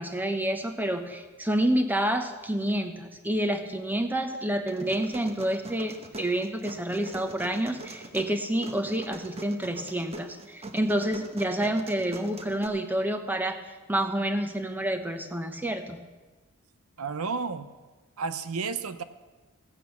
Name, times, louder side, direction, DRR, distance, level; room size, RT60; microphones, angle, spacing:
voice 1, 0.0-16.0, right 1 dB, 10° right, 7 dB, 1.0 m, -28 dB
sound 1, 4.7-12.7, right 2 dB, 25° right, 1.0 m, -42 dB
voice 2, 17.0-17.7 18.2-19.0, right 5 dB, 75° right, 11 dB, 0.8 m, -31 dB
15.5 x 8.5 x 6.9 m, 1.2 s
head